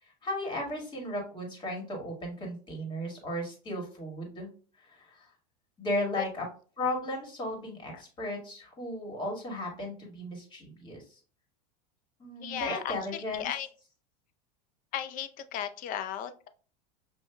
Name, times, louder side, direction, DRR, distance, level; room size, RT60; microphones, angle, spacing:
voice 1, 0.2-4.5 4.8-5.3 5.8-6.5 6.8-11.0 12.2-13.5, left 1 dB, 20° left, 0 dB, 2.0 m, -35 dB
voice 2, 12.4-13.7 14.9-16.5, left 10 dB, 40° left, 11 dB, 0.5 m, -36 dB
6.4 x 2.9 x 2.2 m, 0.39 s
supercardioid pair, 125°, 21 cm